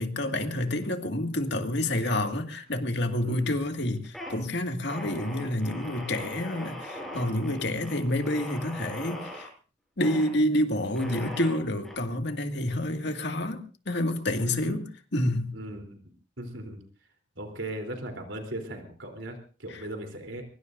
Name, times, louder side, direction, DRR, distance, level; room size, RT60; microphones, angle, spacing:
voice 1, 0.0-9.5 10.0-14.8 15.1-15.6 19.7-19.8, left 1 dB, 60° left, 2.1 m, -28 dB
sound 1, 2.0-2.8 3.1-3.6 4.0-4.4 4.9-9.5 10.0-10.3 10.9-11.9, left 1 dB, ahead, 6.9 m, -41 dB
voice 2, 3.2-3.6 14.4-14.8 15.5-16.0 16.4-16.8 17.4-20.4, right 1 dB, 75° right, 3.5 m, -38 dB
23.5 x 23.0 x 2.6 m
head